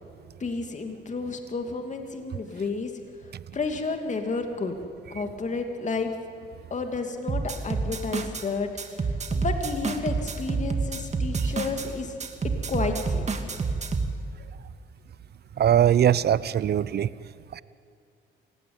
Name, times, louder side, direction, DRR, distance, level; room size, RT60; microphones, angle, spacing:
voice 1, 0.4-2.9 3.5-4.8 5.1-6.1 6.7-12.1 12.7-13.3, left 4 dB, 35° left, 5 dB, 2.6 m, -31 dB
sound 1, 7.3-8.5 8.8-11.9 12.2-14.1, right 4 dB, 35° right, 2.3 m, -28 dB
voice 2, 15.6-17.1 17.5-17.6, right 10 dB, 55° right, 18 dB, 0.8 m, -21 dB
27.0 x 17.0 x 9.7 m, 2.4 s
cardioid pair, 90°, 20 cm